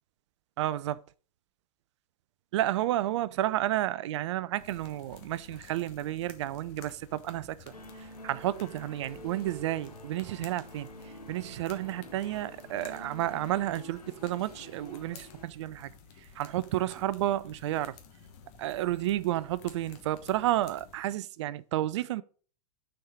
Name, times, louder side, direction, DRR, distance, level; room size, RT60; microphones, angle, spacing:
voice 1, 0.6-1.0 2.5-7.6 8.2-10.9 11.3-15.9 16.4-18.0 18.6-22.2, right 14 dB, 50° right, 0.4 m, -31 dB
sound 1, 4.6-21.0, left 6 dB, 45° left, 1.3 m, -54 dB
sound 2, 7.7-15.4, left 1 dB, 80° left, 1.2 m, -48 dB
6.3 x 4.5 x 4.8 m
figure-of-eight pair, 100°, 20 cm